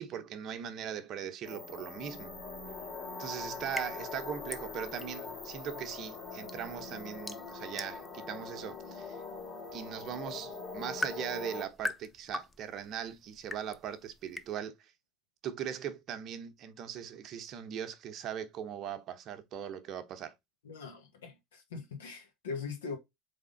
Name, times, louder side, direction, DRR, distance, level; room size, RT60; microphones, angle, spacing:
voice 1, 0.0-2.3 3.2-9.2 9.7-14.9 15.4-20.3, right 9 dB, 50° right, 0.9 m, -40 dB
sound 1, 1.4-11.6, left 4 dB, 45° left, 2.1 m, -43 dB
sound 2, 3.2-14.6, left 2 dB, 10° left, 0.5 m, -44 dB
voice 2, 20.6-23.0, left 5 dB, 80° left, 1.4 m, -41 dB
3.7 x 3.6 x 3.9 m
hypercardioid pair, 75°, 0 cm